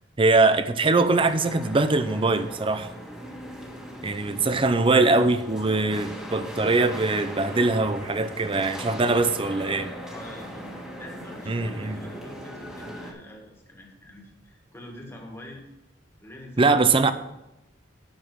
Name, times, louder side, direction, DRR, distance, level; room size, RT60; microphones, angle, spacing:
voice 1, 0.2-2.9 4.0-9.9 11.5-12.0 16.6-17.1, right 3 dB, 30° right, 11 dB, 0.6 m, -22 dB
sound 1, 1.1-13.1, equal, 5° right, 1.7 m, -39 dB
voice 2, 8.8-9.3 10.1-15.7 16.2-16.8, left 1 dB, 15° left, 0 dB, 2.0 m, -44 dB
9.5 x 6.2 x 6.1 m, 0.93 s
head